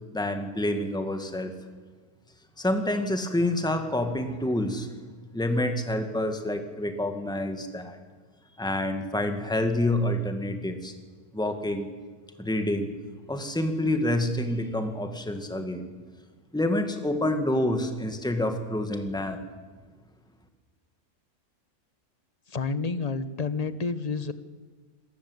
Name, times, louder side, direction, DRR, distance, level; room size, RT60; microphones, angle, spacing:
voice 1, 0.1-1.5 2.6-4.9 5.3-8.0 8.6-10.9 11.3-11.9 12.4-13.0 13.3-15.8 16.5-19.4, left 1 dB, 5° left, 6 dB, 2.0 m, -27 dB
voice 2, 22.5-24.3, left 4 dB, 30° left, 12 dB, 1.1 m, -29 dB
26.5 x 19.0 x 8.2 m, 1.4 s
omnidirectional pair, 1.6 m